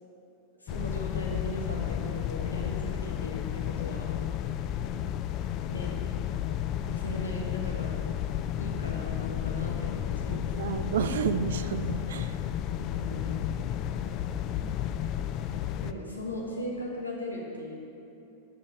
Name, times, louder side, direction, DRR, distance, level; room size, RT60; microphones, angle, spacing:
voice 1, 0.6-4.1 5.7-5.9 6.8-8.0 8.5-10.7 12.8-13.5 15.8-17.8, equal, 85° left, -2 dB, 1.5 m, -38 dB
sound 1, 0.7-15.9, left 10 dB, 40° left, 0.3 m, -32 dB
voice 2, 10.3-12.3, right 7 dB, 60° right, 11 dB, 0.4 m, -31 dB
9.0 x 6.8 x 4.7 m, 2.9 s
figure-of-eight pair, 90°, 0 cm